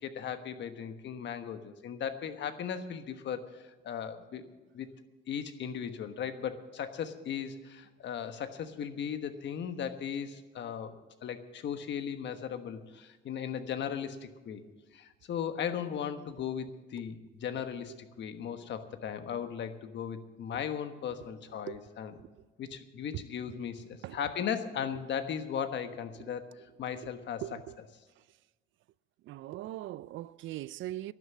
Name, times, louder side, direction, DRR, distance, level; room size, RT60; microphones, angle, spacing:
voice 1, 0.0-4.5 4.7-4.9 5.3-10.9 11.2-14.6 14.9-22.1 22.6-27.4, left 8 dB, 60° left, 1.3 m, -37 dB
voice 2, 27.4-27.7 29.2-31.1, right 15 dB, 70° right, 0.4 m, -40 dB
12.0 x 9.8 x 8.3 m
cardioid pair, 110°, 21 cm